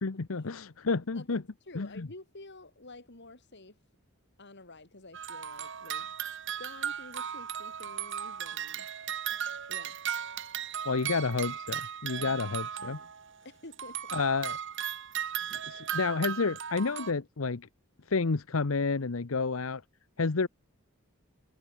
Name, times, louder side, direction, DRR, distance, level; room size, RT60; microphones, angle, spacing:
voice 1, 0.0-1.4 1.7-2.1 10.9-13.0 14.1-14.6 15.5-17.7 18.1-19.8 20.2-20.5, left 4 dB, 80° left, 0.9 m, -30 dB
voice 2, 1.1-3.8 4.4-6.1 6.6-8.9 9.7-10.0 12.1-12.4 12.8-13.1 13.4-14.1, left 2 dB, 60° left, 4.3 m, -50 dB
sound 1, 5.1-13.3 13.7-17.1, right 9 dB, 65° right, 1.4 m, -36 dB
head